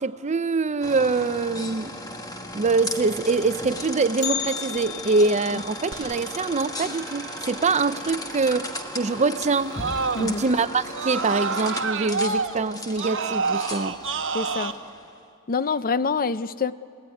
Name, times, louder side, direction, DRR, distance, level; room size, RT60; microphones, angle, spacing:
voice 1, 0.0-2.0 2.5-9.8 10.2-14.0, right 3 dB, 30° right, 13 dB, 0.6 m, -24 dB
sound 1, 0.8-15.2, left 1 dB, 15° left, 1.3 m, -36 dB
Bell, 4.2-8.3 8.6-8.7 9.2-9.3 10.1-10.2 10.9-11.2 11.6-11.7, left 10 dB, 60° left, 0.9 m, -36 dB
Screaming, 5.9-10.5 10.9-14.7, right 4 dB, 60° right, 1.1 m, -30 dB
voice 2, 14.3-14.7 15.5-16.7, left 5 dB, 40° left, 15 dB, 0.6 m, -25 dB
29.5 x 17.0 x 9.7 m, 2.5 s
head